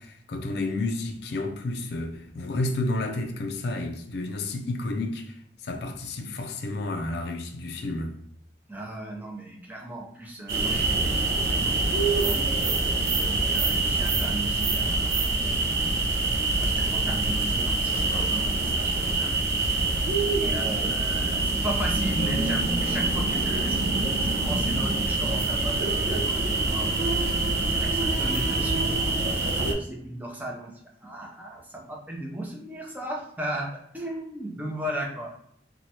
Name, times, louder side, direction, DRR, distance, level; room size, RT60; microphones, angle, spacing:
voice 1, 0.0-8.2, left 2 dB, 65° left, 0.4 m, -31 dB
voice 2, 8.7-12.6 13.2-16.0 16.5-19.4 20.3-27.2 27.7-30.7 31.0-35.3, right 1 dB, 10° right, 0.6 m, -36 dB
sound 1, 10.5-29.7, right 2 dB, 60° right, 0.5 m, -25 dB
3.0 x 2.2 x 2.7 m
head